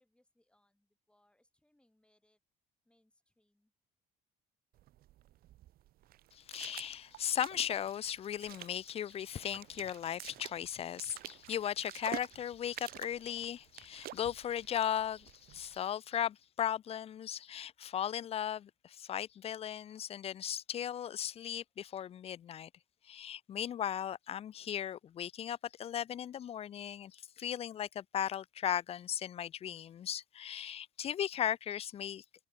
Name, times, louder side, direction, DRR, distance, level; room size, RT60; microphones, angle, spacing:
voice 1, 0.0-2.4 2.8-3.7, left 1 dB, 5° left, 5.0 m, -74 dB
sound 1, 4.7-15.8, right 14 dB, 60° right, 0.6 m, -50 dB
voice 2, 6.3-22.7 23.0-32.2, left 10 dB, 35° left, 0.3 m, -37 dB
cardioid pair, 110°, 17 cm